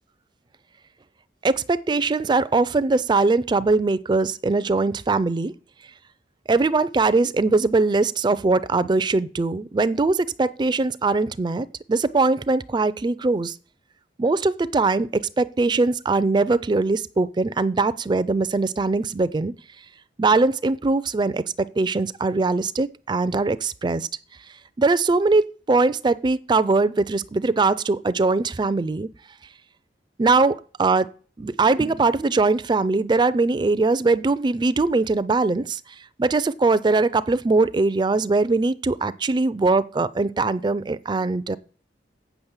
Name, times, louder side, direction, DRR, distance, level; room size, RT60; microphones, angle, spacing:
voice 1, 1.4-5.5 6.5-13.6 14.2-19.5 20.2-24.1 24.8-29.1 30.2-31.1 31.4-35.8 36.2-41.6, right 3 dB, 25° right, 0.4 m, -21 dB
8.1 x 6.1 x 7.1 m
head